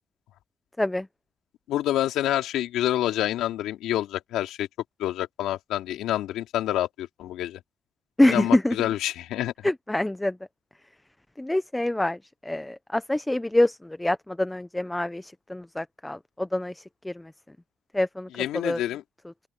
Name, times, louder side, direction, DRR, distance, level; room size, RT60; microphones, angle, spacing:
voice 1, 1.7-4.7 5.0-7.6 8.3-9.7 18.3-19.0, left 13 dB, 90° left, 2.9 m, -27 dB
voice 2, 8.2-8.8 9.6-10.4 11.4-17.3 17.9-18.3 18.5-18.8, left 1 dB, 10° left, 0.7 m, -25 dB
open air
cardioid pair, 90°, 0 cm